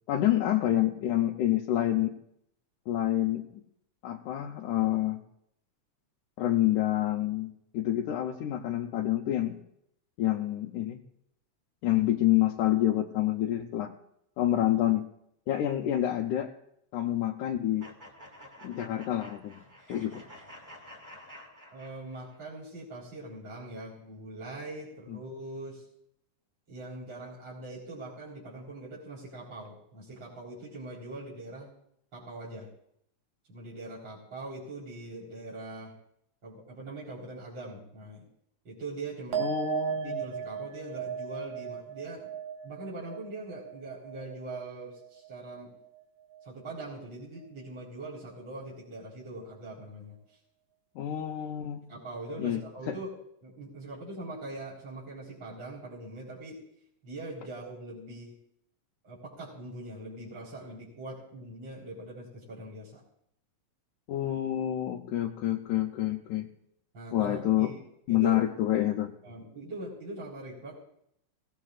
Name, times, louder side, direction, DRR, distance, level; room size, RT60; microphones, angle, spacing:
voice 1, 0.1-2.2 2.9-3.5 4.0-5.2 6.4-9.6 10.2-11.0 11.8-13.9 14.4-15.1 15.5-16.5 16.9-17.9 18.6-19.6 19.9-20.2 25.1-25.2 39.4-40.2 51.0-51.9 52.4-52.6 52.9-53.0 64.1-66.5 67.1-67.7 68.1-69.1, left 13 dB, 80° left, 0 dB, 2.2 m, -28 dB
sound 1, 17.8-22.4, equal, 10° right, 1.5 m, -50 dB
voice 2, 21.7-25.8 26.7-31.7 32.1-32.7 33.5-35.9 36.4-38.3 38.6-39.5 39.9-42.3 42.6-45.7 46.4-50.2 51.9-53.1 53.4-56.6 57.0-58.3 59.0-63.0 66.9-67.8 68.1-68.4 69.2-70.7, right 2 dB, 35° right, -7 dB, 4.7 m, -42 dB
sound 2, 39.3-46.0 46.3-46.9, right 8 dB, 70° right, 2.8 m, -37 dB
24.0 x 17.5 x 2.5 m, 0.73 s
omnidirectional pair, 3.6 m